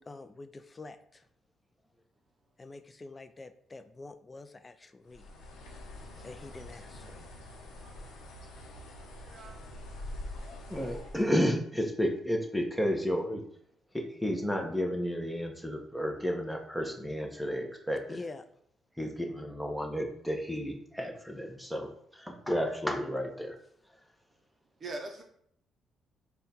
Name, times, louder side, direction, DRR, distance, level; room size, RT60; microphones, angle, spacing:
voice 1, 0.1-1.3 2.6-5.3 5.7-5.8 6.2-7.2 18.1-18.4, left 3 dB, 25° left, 10 dB, 0.3 m, -46 dB
Bird, 5.1-11.3, left 1 dB, 80° left, 0.7 m, -45 dB
voice 2, 9.2-9.6 24.8-25.2, right 2 dB, 45° right, 2 dB, 0.6 m, -42 dB
voice 3, 10.7-13.4 13.9-18.2 19.0-23.6 23.9-24.0, equal, 5° left, 2 dB, 0.7 m, -32 dB
3.6 x 2.3 x 4.1 m, 0.67 s
cardioid pair, 90°, 0 cm